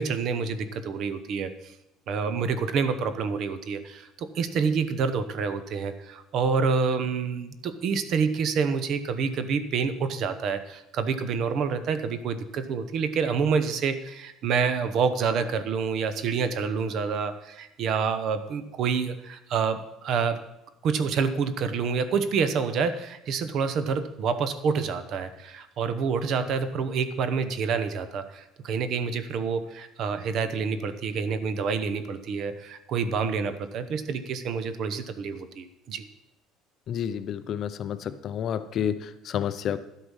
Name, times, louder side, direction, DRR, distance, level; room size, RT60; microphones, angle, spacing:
voice 1, 0.0-1.7 2.1-20.4 20.8-36.1, right 5 dB, 45° right, 11 dB, 0.9 m, -28 dB
voice 2, 36.9-39.8, left 9 dB, 40° left, 13 dB, 0.5 m, -30 dB
12.5 x 8.1 x 5.5 m, 0.88 s
cardioid pair, 160°, 0 cm